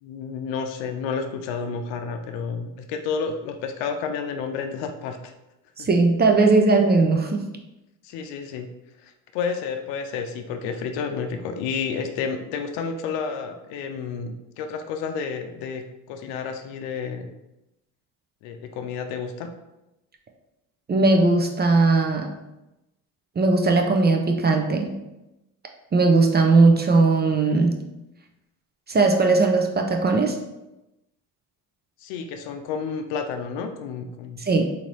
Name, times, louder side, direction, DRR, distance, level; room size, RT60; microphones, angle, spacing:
voice 1, 0.0-5.3 5.8-5.9 8.0-8.7 9.0-17.3 18.4-19.5 32.0-34.4, left 5 dB, 70° left, 6 dB, 0.6 m, -30 dB
voice 2, 5.8-7.4 20.9-22.3 23.4-24.9 25.9-27.8 28.9-30.4 34.4-34.7, right 3 dB, 20° right, 4 dB, 0.5 m, -18 dB
3.8 x 2.8 x 3.0 m, 0.94 s
hypercardioid pair, 65°, 46 cm